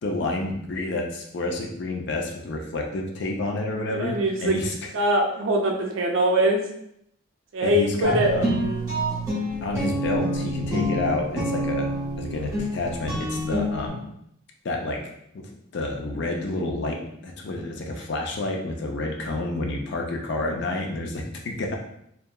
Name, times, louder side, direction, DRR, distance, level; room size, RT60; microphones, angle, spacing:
voice 1, 0.0-4.7 7.6-8.5 9.6-11.9 12.2-14.0 14.6-15.0 15.3-15.5 15.7-21.7, left 2 dB, 55° left, 1 dB, 0.4 m, -29 dB
voice 2, 3.9-4.6 4.9-6.6 7.5-8.3, right 1 dB, 65° right, 1 dB, 0.5 m, -22 dB
sound 1, 8.0-13.9, equal, 15° right, 0.7 m, -27 dB
2.7 x 2.3 x 2.2 m, 0.74 s
head